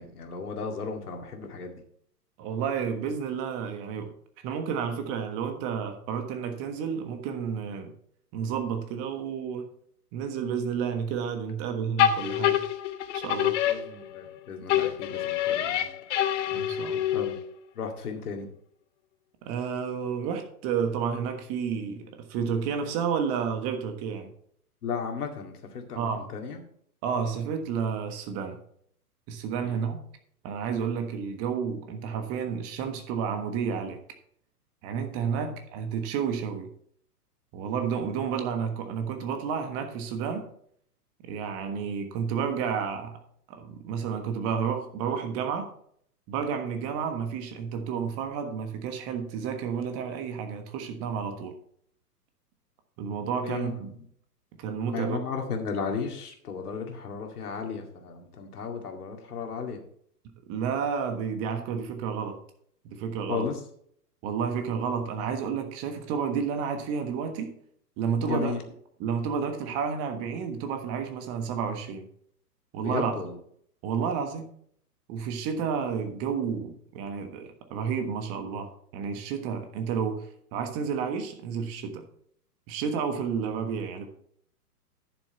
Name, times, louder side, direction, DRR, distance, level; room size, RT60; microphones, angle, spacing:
voice 1, 0.0-1.8 13.7-15.9 17.1-17.4 17.7-18.5 24.8-26.6 29.6-29.8 35.4-35.5 53.4-53.8 54.9-59.8 63.3-63.6 68.2-68.6 72.8-73.4, left 5 dB, 65° left, 3 dB, 2.3 m, -34 dB
voice 2, 2.4-4.1 4.4-7.9 8.3-9.7 10.1-12.6 13.1-13.6 16.5-17.0 19.4-24.3 26.0-26.2 27.0-28.6 29.3-30.0 30.4-34.0 34.8-36.7 37.5-40.5 41.2-43.2 43.5-45.7 46.3-51.5 53.0-53.9 54.6-55.2 60.5-62.4 62.8-63.5 64.2-67.5 68.0-68.5 69.0-72.1 72.7-73.1 73.8-74.5 75.1-82.0 82.7-84.1, right 6 dB, 30° right, 7 dB, 1.4 m, -31 dB
sound 1, 12.0-14.4 14.7-17.5, left 11 dB, 45° left, 1.0 m, -26 dB
10.5 x 7.1 x 4.3 m, 0.65 s
hypercardioid pair, 120°, 48 cm